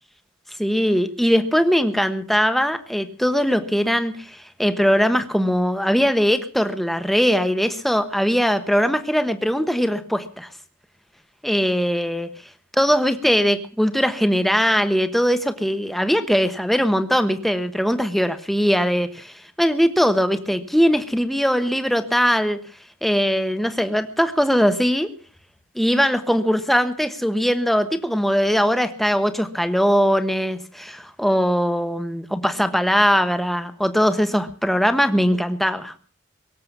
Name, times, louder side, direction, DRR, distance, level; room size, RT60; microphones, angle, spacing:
voice 1, 0.6-10.5 11.4-12.3 12.8-22.6 23.0-25.1 25.7-36.0, equal, ahead, 9 dB, 1.2 m, -20 dB
23.0 x 7.8 x 7.3 m, 0.42 s
head